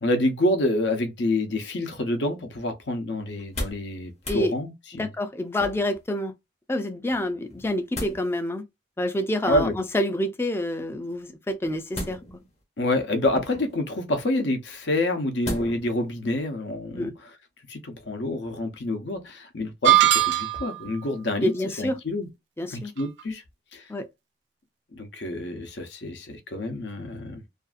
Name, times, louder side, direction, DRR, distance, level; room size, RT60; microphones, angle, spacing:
voice 1, 0.0-5.1 9.5-9.8 12.8-17.1 17.7-21.5 21.8-22.3 22.7-23.4 23.7-23.9 24.9-27.4, left 1 dB, 75° left, 0.7 m, -27 dB
sound 1, 3.3-3.9 4.2-4.4 5.6-6.0 7.5-8.2 9.4-9.9 11.9-12.5 13.3-13.8 15.4-15.9 16.4-16.5, left 1 dB, 35° left, 0.8 m, -35 dB
voice 2, 5.0-6.3 6.7-8.6 9.0-12.2 16.9-17.1 21.4-22.0 22.6-22.9 23.9-24.1, left 1 dB, 15° left, 0.3 m, -27 dB
sound 2, 19.8-20.8, right 13 dB, 70° right, 0.5 m, -19 dB
2.5 x 2.3 x 2.4 m
head